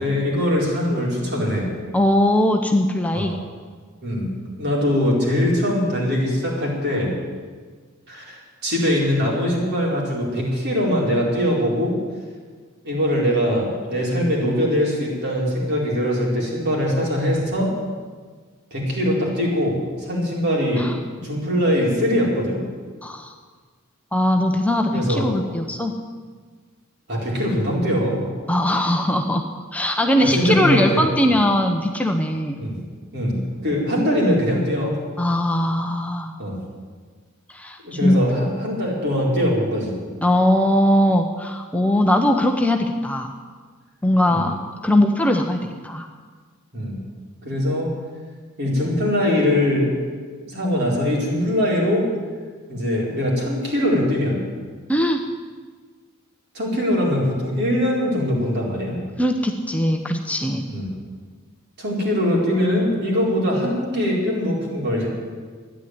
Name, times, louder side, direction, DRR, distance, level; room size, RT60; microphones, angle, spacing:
voice 1, 0.0-1.7 3.1-3.4 4.0-4.3 4.6-7.1 8.1-11.9 12.8-17.7 18.7-20.8 21.2-22.6 24.9-25.3 27.1-28.2 30.2-31.4 32.6-32.8 33.1-33.4 33.6-34.9 36.4-36.6 37.8-40.0 44.2-44.5 46.7-47.0 47.4-47.9 48.6-49.9 50.5-52.1 52.7-54.4 56.5-58.9 60.7-60.9 61.8-65.1, equal, 55° right, -3 dB, 4.6 m, -22 dB
voice 2, 1.9-3.4 20.8-21.0 23.0-23.3 24.1-25.9 28.5-29.4 29.7-32.6 35.2-36.3 37.5-38.2 40.2-43.3 44.0-44.6 44.8-46.1 54.9-55.2 59.2-60.6, left 1 dB, 5° left, 3 dB, 0.8 m, -20 dB
13.0 x 10.0 x 9.6 m, 1.5 s
head